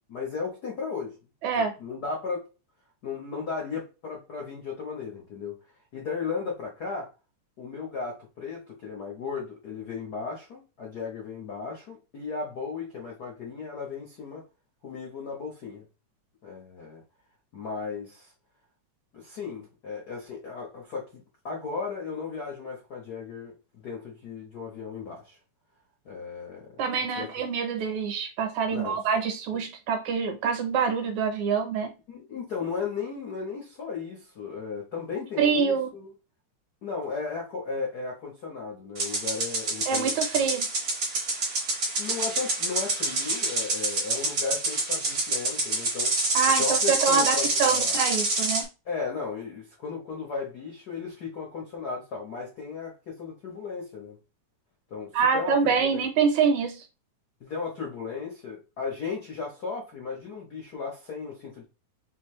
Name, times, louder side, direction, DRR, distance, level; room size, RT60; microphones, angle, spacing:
voice 1, 0.1-1.2 1.5-2.5 3.0-5.6 5.9-7.1 7.6-14.4 14.8-15.8 16.4-17.0 17.5-18.3 19.1-25.4 26.0-26.7 27.1-27.3 28.7-29.0 29.5-29.6 32.1-36.1 36.8-40.5 42.0-46.2 46.6-48.0 48.8-54.2 54.9-56.1 57.4-61.6, left 5 dB, 90° left, 0.8 m, -35 dB
voice 2, 1.4-1.7 26.8-31.9 35.4-35.9 39.9-40.7 46.3-48.7 55.1-56.8, right 6 dB, 70° right, 2.1 m, -25 dB
sound 1, 38.9-48.6, right 2 dB, 55° right, 0.8 m, -27 dB
5.5 x 2.7 x 3.2 m
omnidirectional pair, 3.7 m